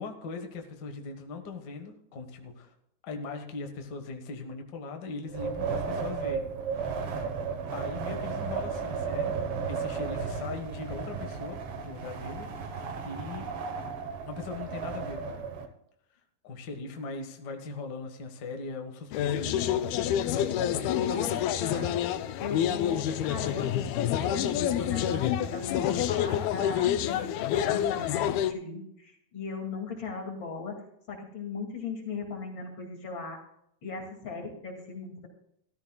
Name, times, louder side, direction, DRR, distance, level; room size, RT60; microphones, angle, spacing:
voice 1, 0.0-2.7 3.0-6.5 6.7-6.9 7.7-9.4 9.7-11.6 11.8-13.5 14.3-15.5 16.4-19.9 20.3-21.1, left 3 dB, 75° left, 4 dB, 0.9 m, -40 dB
Wind, 5.3-15.7, right 5 dB, 75° right, 1.2 m, -34 dB
sound 1, 19.1-28.5, left 10 dB, 90° left, 2.6 m, -28 dB
voice 2, 20.9-22.0 22.4-30.8 31.1-33.4 33.8-35.3, left 4 dB, 35° left, 1 dB, 2.6 m, -38 dB
15.0 x 13.5 x 2.3 m, 0.74 s
omnidirectional pair, 4.2 m